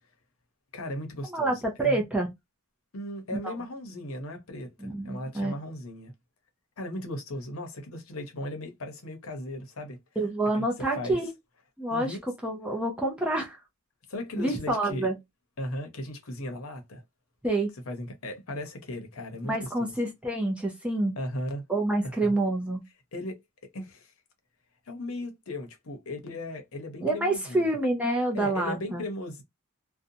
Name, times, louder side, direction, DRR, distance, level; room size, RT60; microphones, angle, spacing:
voice 1, 0.7-1.5 1.8-2.0 2.9-6.1 6.8-10.0 10.5-11.2 11.9-12.2 14.1-15.1 15.6-17.0 17.9-19.9 21.2-21.6 22.0-22.3 23.1-23.4 23.7-24.1 24.9-27.7 28.3-29.4, left 1 dB, 70° left, 0.8 m, -37 dB
voice 2, 1.3-2.3 3.4-3.6 4.8-5.5 10.2-11.3 11.8-12.2 12.4-13.6 14.4-15.1 17.4-17.7 19.4-21.2 21.7-22.8 27.0-29.0, right 2 dB, 5° right, 0.5 m, -27 dB
2.6 x 2.2 x 2.6 m
head